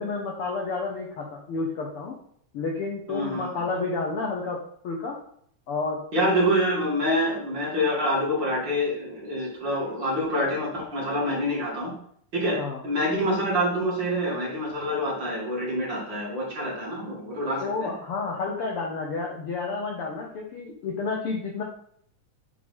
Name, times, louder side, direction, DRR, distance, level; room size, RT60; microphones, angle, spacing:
voice 1, 0.0-2.1 2.5-5.2 5.7-6.1 12.5-12.8 17.6-21.6, left 4 dB, 65° left, 0 dB, 1.4 m, -30 dB
voice 2, 3.1-3.6 6.1-11.9 12.3-17.9, equal, 40° right, -4 dB, 2.3 m, -26 dB
8.3 x 3.7 x 5.3 m, 0.64 s
omnidirectional pair, 3.6 m